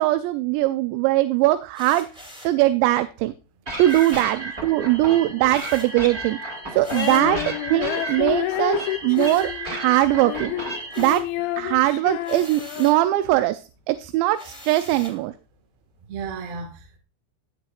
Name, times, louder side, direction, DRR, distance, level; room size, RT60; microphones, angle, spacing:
voice 1, 0.0-2.1 2.4-3.3 3.8-6.4 6.7-7.4 7.7-10.5 11.0-11.2 11.6-13.6 13.9-15.3, right 16 dB, 85° right, 2.8 m, -21 dB
sound 1, 1.7-2.6 3.8-4.4 5.5-6.0 6.8-7.3 9.1-10.0 10.4-11.4 12.2-13.0 14.3-15.2, equal, ahead, 1.3 m, -43 dB
sound 2, 3.7-11.1, right 2 dB, 25° right, 1.6 m, -33 dB
Female singing, 6.8-13.3, left 14 dB, 80° left, 2.9 m, -29 dB
voice 2, 7.2-7.5 11.6-11.7 16.1-17.0, right 4 dB, 60° right, 3.3 m, -35 dB
16.0 x 7.8 x 2.5 m
omnidirectional pair, 5.2 m